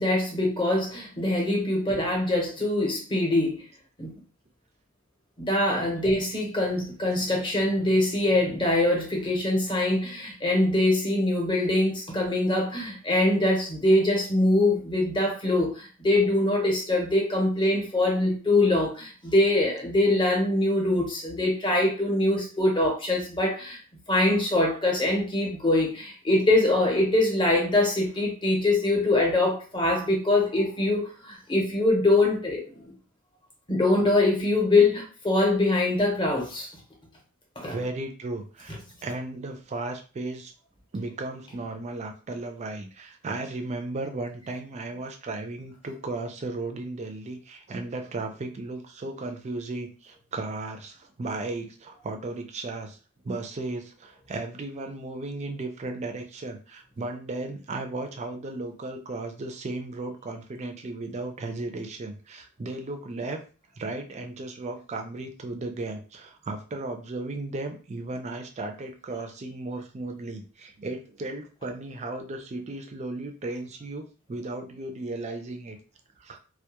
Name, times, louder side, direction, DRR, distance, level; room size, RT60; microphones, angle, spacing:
voice 1, 0.0-3.6 4.0-4.1 5.4-23.8 24.1-32.9 33.7-36.7 37.6-37.8, left 2 dB, 20° left, 0 dB, 0.7 m, -23 dB
voice 2, 37.7-40.5 40.9-53.0 53.2-63.4 63.8-75.8 76.2-76.4, right 2 dB, 30° right, 5 dB, 0.4 m, -35 dB
2.2 x 2.0 x 2.8 m, 0.36 s
head